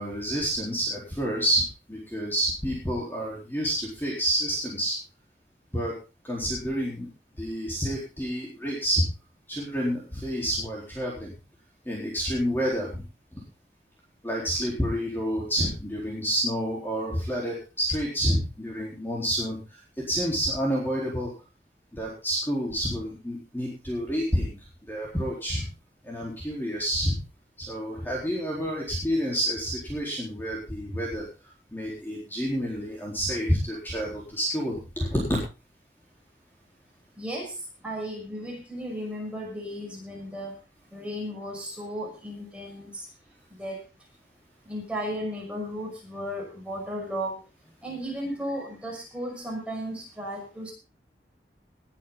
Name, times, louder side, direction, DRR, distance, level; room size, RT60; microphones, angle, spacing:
voice 1, 0.0-5.0 5.7-5.9 6.2-7.1 7.4-9.1 9.5-11.3 11.9-13.0 13.3-13.4 14.2-19.8 20.1-21.3 21.9-24.5 24.9-25.7 26.0-27.2 27.7-31.3 31.7-35.3, equal, 10° left, -3 dB, 4.2 m, -29 dB
voice 2, 37.2-40.6 40.9-43.1 43.5-43.9 44.6-47.4 47.8-50.7, equal, 5° right, -1 dB, 5.8 m, -35 dB
20.0 x 10.0 x 3.9 m, 0.31 s
head